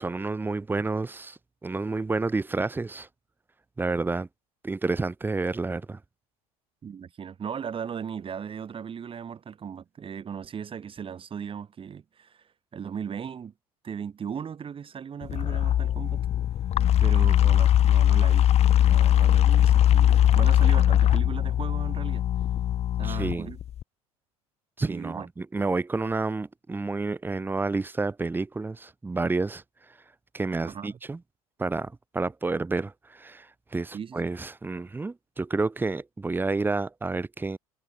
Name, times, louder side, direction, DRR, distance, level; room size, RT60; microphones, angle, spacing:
voice 1, 0.0-3.1 3.8-4.3 4.6-6.0 23.0-23.5 24.8-29.6 30.3-31.2 31.6-37.6, right 3 dB, 10° right, 1.0 m, -30 dB
voice 2, 6.8-12.4 12.7-13.5 13.8-16.3 17.0-18.5 18.8-22.3 23.0-23.6 24.8-25.3 30.6-31.0 33.9-34.2, right 7 dB, 25° right, 5.1 m, -37 dB
sound 1, 15.2-23.8, left 11 dB, 35° left, 1.1 m, -21 dB
figure-of-eight pair, 75°, 19 cm